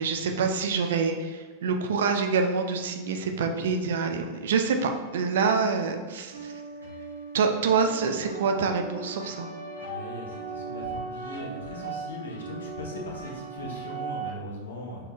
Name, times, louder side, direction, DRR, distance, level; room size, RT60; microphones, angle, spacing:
voice 1, 0.0-6.5 7.3-9.5, right 5 dB, 60° right, 4 dB, 0.5 m, -26 dB
sound 1, 6.3-14.3, right 4 dB, 80° right, 0.9 m, -38 dB
voice 2, 9.7-15.1, left 1 dB, 65° left, -1 dB, 1.0 m, -39 dB
5.4 x 3.7 x 2.4 m, 1.5 s
figure-of-eight pair, 90°, 0 cm